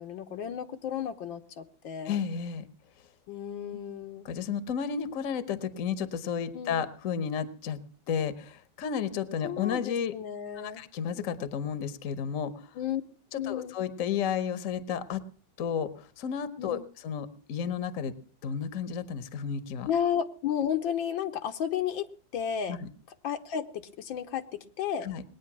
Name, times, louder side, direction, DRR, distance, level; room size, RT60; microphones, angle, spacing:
voice 1, 0.0-2.2 3.3-4.3 6.5-6.8 9.4-10.8 12.8-13.0 13.3-13.8 16.6-16.8 19.9-22.8 23.2-25.1, left 9 dB, 80° left, 7 dB, 1.7 m, -33 dB
voice 2, 2.0-2.6 3.7-3.8 4.2-7.8 8.1-10.1 10.5-12.7 13.3-15.2 15.6-18.1 18.4-19.9 22.7-22.9 25.0-25.2, left 7 dB, 50° left, 13 dB, 1.2 m, -32 dB
20.0 x 9.4 x 6.0 m, 0.43 s
omnidirectional pair, 2.1 m